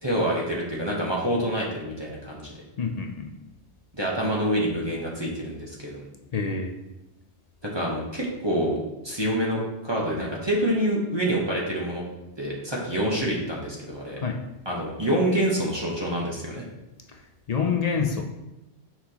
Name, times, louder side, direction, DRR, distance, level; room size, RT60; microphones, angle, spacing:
voice 1, 0.0-2.5 3.9-6.1 7.6-8.8 9.0-12.0 12.4-14.2 14.6-16.6, right 1 dB, 25° right, -4 dB, 1.1 m, -27 dB
voice 2, 2.8-3.3 6.3-6.7 14.2-14.4 17.5-18.2, left 5 dB, 50° left, 4 dB, 0.5 m, -26 dB
5.9 x 5.9 x 2.9 m, 0.94 s
omnidirectional pair, 1.1 m